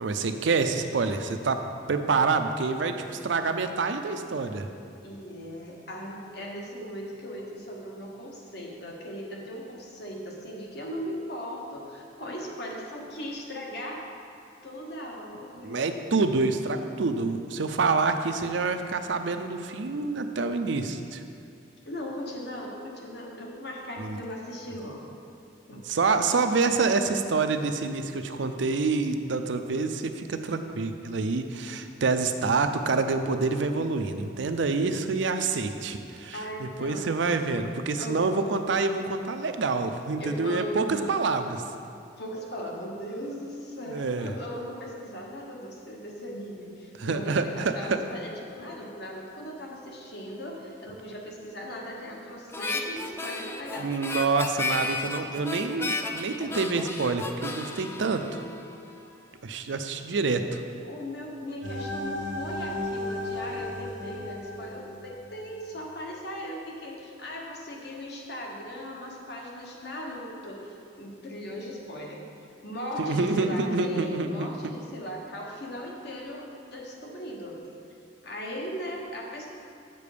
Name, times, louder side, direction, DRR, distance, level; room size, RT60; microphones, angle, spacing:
voice 1, 0.0-1.6 1.9-4.7 15.6-21.2 24.0-24.2 25.7-41.6 43.9-44.3 47.0-48.0 53.8-58.4 59.4-60.6 73.0-74.7, right 4 dB, 70° right, 7 dB, 0.5 m, -27 dB
voice 2, 5.0-14.0 14.6-15.9 21.8-25.2 25.7-26.3 36.3-37.0 37.9-38.3 40.2-41.1 42.2-53.9 60.8-72.2 72.6-77.6 78.2-79.5, equal, 55° left, -1 dB, 1.3 m, -38 dB
Harmonica, 52.5-59.0, left 3 dB, 10° left, 0.3 m, -33 dB
sound 1, 61.6-65.6, left 1 dB, 90° right, 1.1 m, -35 dB
7.6 x 6.8 x 5.0 m, 2.5 s
head